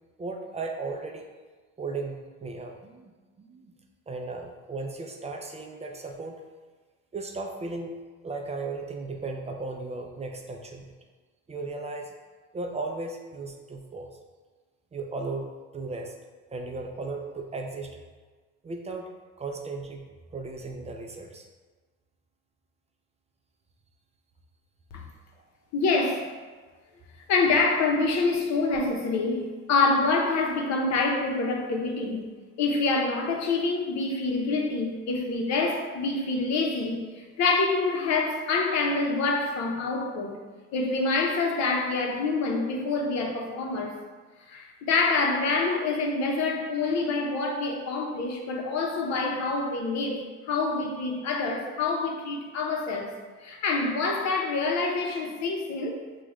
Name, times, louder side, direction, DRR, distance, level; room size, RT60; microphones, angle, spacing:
voice 1, 0.2-1.3 1.8-3.1 3.4-3.7 4.1-6.4 7.1-8.0 8.2-10.9 11.5-12.1 12.5-14.1 14.9-16.1 16.5-18.0 18.6-19.1 19.4-20.0 20.3-21.5, right 3 dB, 20° right, 2 dB, 0.4 m, -36 dB
voice 2, 25.7-26.3 27.3-32.3 32.6-40.4 40.7-44.0 44.5-53.1 53.4-56.0, left 3 dB, 60° left, 1 dB, 0.8 m, -26 dB
6.1 x 2.4 x 3.0 m, 1.4 s
cardioid pair, 120°, 32 cm